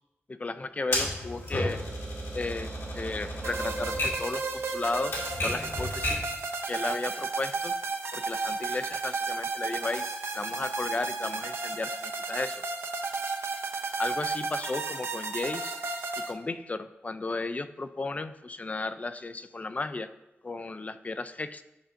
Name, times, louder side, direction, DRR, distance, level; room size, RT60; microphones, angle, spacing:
voice 1, 0.4-1.8 2.3-6.2 6.7-7.7 8.1-10.1 10.3-12.6 14.0-15.7 16.3-20.1 20.4-21.6, left 3 dB, 35° left, 11 dB, 0.3 m, -34 dB
Typewriter, 0.9-6.4, left 1 dB, 75° left, 2.0 m, -33 dB
sound 1, 3.4-16.3, right 4 dB, 65° right, 0.6 m, -33 dB
8.8 x 5.4 x 2.6 m, 0.93 s
wide cardioid pair, 75°, 4 cm